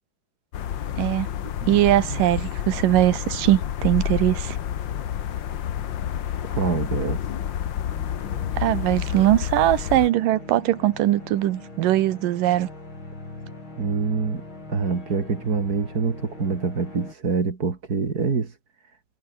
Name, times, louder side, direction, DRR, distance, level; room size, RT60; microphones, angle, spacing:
sound 1, 0.5-10.1, left 10 dB, 80° left, 1.0 m, -29 dB
voice 1, 1.0-1.3 1.7-4.6 8.6-12.7, right 14 dB, 80° right, 2.7 m, -21 dB
voice 2, 1.6-2.3 6.4-7.2 13.8-14.4 14.7-18.5, right 5 dB, 30° right, 2.5 m, -26 dB
sound 2, 7.9-17.1, left 2 dB, 35° left, 8.8 m, -41 dB
omnidirectional pair, 3.8 m